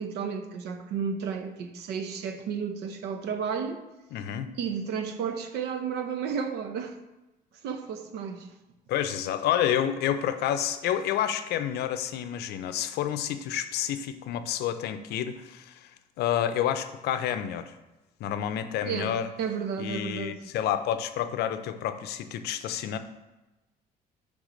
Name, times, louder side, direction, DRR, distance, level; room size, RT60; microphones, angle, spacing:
voice 1, 0.0-3.8 4.5-7.0 7.6-8.5 18.8-20.4, right 6 dB, 80° right, 0.7 m, -32 dB
voice 2, 4.1-4.5 8.9-15.9 16.2-17.8 18.2-19.3 19.8-23.0, left 10 dB, 75° left, 0.5 m, -29 dB
6.5 x 3.5 x 5.0 m
cardioid pair, 110°, 17 cm